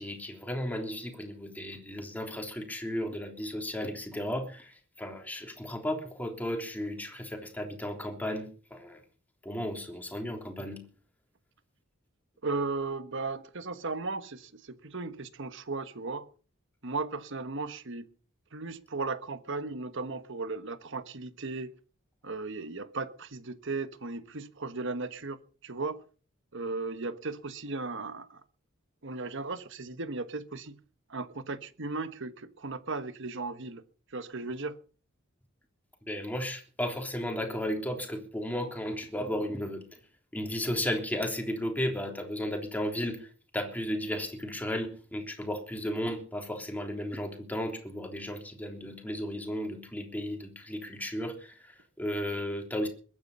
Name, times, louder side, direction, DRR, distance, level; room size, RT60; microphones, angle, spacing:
voice 1, 0.0-9.0 9.4-10.8 36.1-40.0 40.3-52.9, equal, 10° left, 3.4 m, -34 dB
voice 2, 12.4-16.3 16.8-18.1 18.5-21.7 22.2-26.0 26.5-28.4 29.0-30.8 31.1-33.8 34.1-34.8, right 3 dB, 60° right, 1.3 m, -36 dB
21.5 x 9.8 x 5.5 m
head